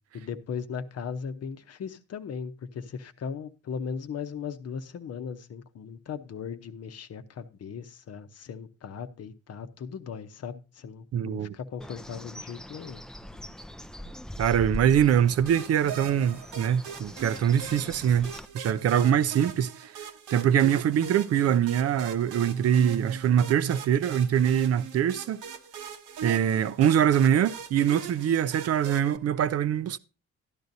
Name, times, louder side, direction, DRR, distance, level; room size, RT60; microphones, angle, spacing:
voice 1, 0.1-13.0 19.0-19.4, left 6 dB, 55° left, 0.8 m, -38 dB
voice 2, 11.1-11.5 14.4-19.9 20.3-25.4 26.2-30.0, right 9 dB, 55° right, 0.5 m, -23 dB
Bird, 11.8-18.5, equal, ahead, 0.4 m, -41 dB
sound 1, 15.5-29.2, right 7 dB, 80° right, 1.0 m, -41 dB
12.5 x 10.5 x 2.7 m
cardioid pair, 90°, 30 cm